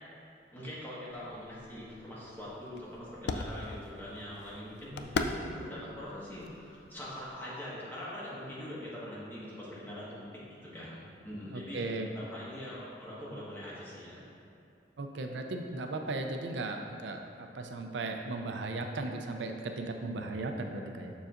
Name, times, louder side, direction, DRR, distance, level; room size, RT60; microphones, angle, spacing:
voice 1, 0.5-14.2, left 1 dB, 10° left, -8 dB, 1.4 m, -43 dB
sound 1, 1.1-7.4, left 3 dB, 65° left, 0.4 m, -40 dB
voice 2, 11.5-12.1 15.0-21.1, right 2 dB, 85° right, 4 dB, 0.5 m, -36 dB
6.8 x 6.3 x 2.5 m, 2.6 s
head